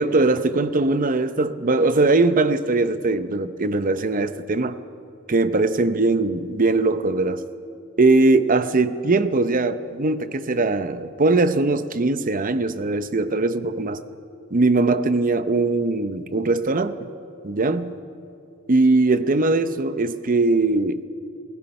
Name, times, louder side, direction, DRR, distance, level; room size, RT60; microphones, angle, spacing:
voice 1, 0.0-4.8 5.3-7.4 8.0-14.0 14.5-17.1 17.4-17.9 18.7-21.1, right 3 dB, 40° right, 12 dB, 0.7 m, -20 dB
27.5 x 17.5 x 5.4 m, 2.7 s
head